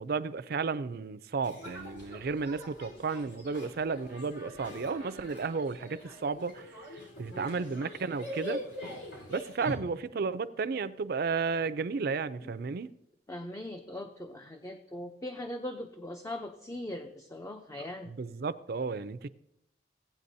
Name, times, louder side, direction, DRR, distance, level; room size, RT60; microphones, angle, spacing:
voice 1, 0.0-6.7 7.2-8.6 9.3-12.9 18.1-19.3, right 4 dB, 60° right, 0.4 m, -33 dB
sound 1, 1.4-9.7, equal, 90° left, 3.9 m, -44 dB
voice 2, 7.3-7.7 12.4-12.5 13.3-18.1, left 1 dB, 20° left, 0.5 m, -40 dB
16.5 x 9.1 x 2.7 m
head